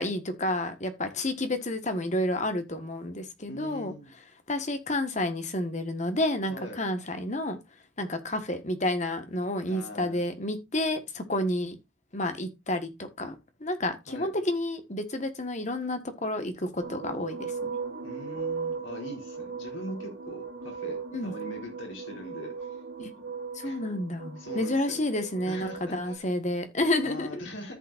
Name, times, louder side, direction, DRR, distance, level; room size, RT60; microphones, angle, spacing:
voice 1, 0.0-3.9 4.5-7.6 8.0-11.8 12.1-13.3 13.6-17.8 21.1-21.3 23.0-23.1 23.5-27.4, left 1 dB, 35° left, 1.5 m, -30 dB
voice 2, 3.5-4.1 6.5-6.8 9.7-10.2 14.1-14.3 18.0-22.8 23.6-23.8 24.4-25.0 25.5-26.2 27.0-27.8, left 1 dB, 75° left, 4.0 m, -41 dB
sound 1, 16.8-26.2, right 5 dB, 70° right, 2.5 m, -38 dB
14.0 x 5.7 x 2.6 m
head